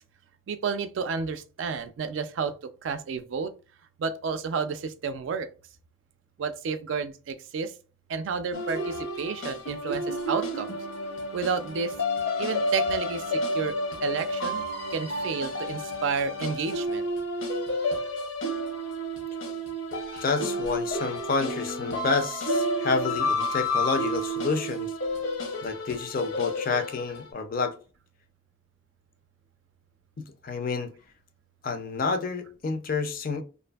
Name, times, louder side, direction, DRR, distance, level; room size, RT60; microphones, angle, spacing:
voice 1, 0.5-2.5 2.8-3.5 4.0-5.5 6.4-7.7 8.1-10.7 11.3-11.9 12.4-13.2 13.5-13.8 14.0-14.7 14.9-17.0 20.1-20.2, right 5 dB, 75° right, 0.4 m, -31 dB
sound 1, 8.5-27.3, left 1 dB, 75° left, 0.7 m, -30 dB
voice 2, 20.2-24.9 25.6-27.7 30.4-30.9 31.6-33.4, left 4 dB, 45° left, 0.4 m, -29 dB
2.5 x 2.5 x 2.3 m
head